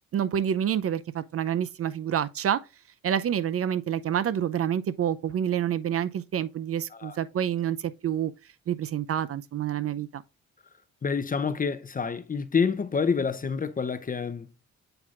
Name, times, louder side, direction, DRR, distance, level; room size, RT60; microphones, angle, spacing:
voice 1, 0.1-2.6 3.0-8.3 8.7-10.2, right 9 dB, 50° right, 0.6 m, -28 dB
voice 2, 11.0-14.5, left 5 dB, 30° left, 0.7 m, -28 dB
7.9 x 5.6 x 2.4 m
cardioid pair, 90°, 30 cm